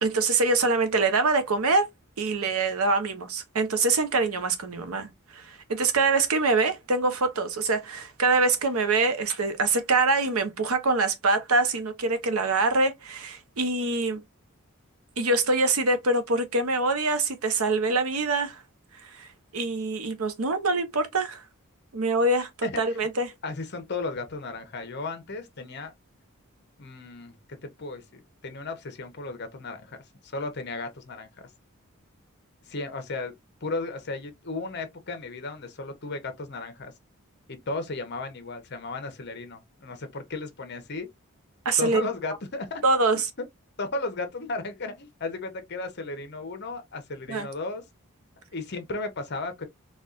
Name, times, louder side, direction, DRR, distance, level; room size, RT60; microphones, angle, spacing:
voice 1, 0.0-1.8 2.2-14.2 15.2-18.6 19.0-21.4 21.9-23.3 41.6-42.0 42.8-43.3 47.3-47.5, right 3 dB, 85° right, 0.8 m, -24 dB
voice 2, 23.4-25.9 26.8-30.0 30.2-31.5 32.7-33.3 33.6-36.9 37.5-41.1 41.8-42.8 43.8-47.8 48.5-49.7, left 3 dB, 50° left, 0.8 m, -35 dB
4.2 x 2.4 x 2.4 m
head